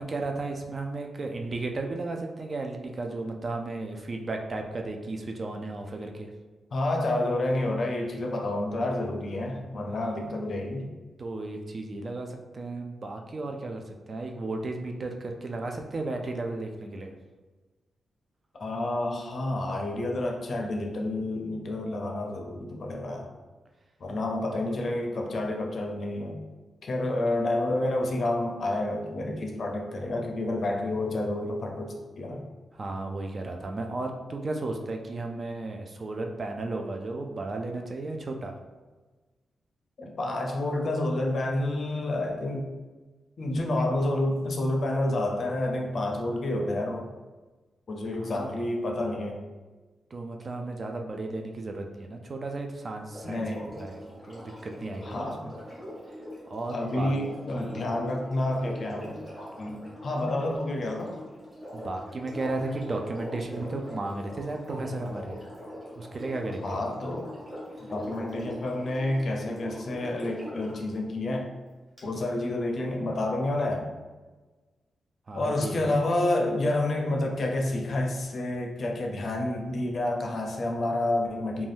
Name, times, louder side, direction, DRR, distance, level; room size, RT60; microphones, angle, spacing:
voice 1, 0.0-6.3 9.7-10.2 11.2-17.2 32.7-38.6 48.1-48.5 50.1-55.5 56.5-57.1 57.5-57.9 61.7-65.4 66.0-66.9 75.3-76.0, right 2 dB, 40° right, 3 dB, 0.3 m, -34 dB
voice 2, 6.7-10.8 18.6-23.3 24.0-26.4 26.8-32.4 40.0-42.7 43.4-47.1 47.9-49.4 53.2-53.8 55.0-55.4 56.7-59.2 59.6-61.2 66.6-67.3 67.9-71.5 72.0-73.9 75.3-81.7, left 1 dB, 50° left, 1 dB, 0.5 m, -29 dB
Sink (filling or washing), 53.0-70.8 72.0-72.1, equal, 15° right, 1.4 m, -42 dB
2.6 x 2.2 x 3.3 m, 1.3 s
wide cardioid pair, 115°, 0 cm